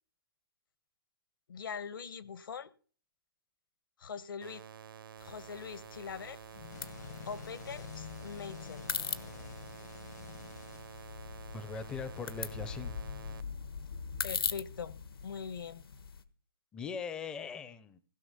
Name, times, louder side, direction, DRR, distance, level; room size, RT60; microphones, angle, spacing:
voice 1, 1.5-2.7 4.0-4.6 5.2-6.4 7.3-8.9 14.2-15.0 15.2-15.8, left 6 dB, 65° left, 1.1 m, -42 dB
sound 1, 4.4-13.4, right 8 dB, 70° right, 0.7 m, -50 dB
sound 2, 5.2-16.2, left 6 dB, 80° left, 1.3 m, -42 dB
sound 3, 6.5-11.4, left 8 dB, 50° left, 0.8 m, -48 dB
voice 2, 11.5-13.0 16.7-18.0, left 5 dB, 5° left, 0.5 m, -40 dB
16.5 x 6.1 x 6.6 m
hypercardioid pair, 160°, 12 cm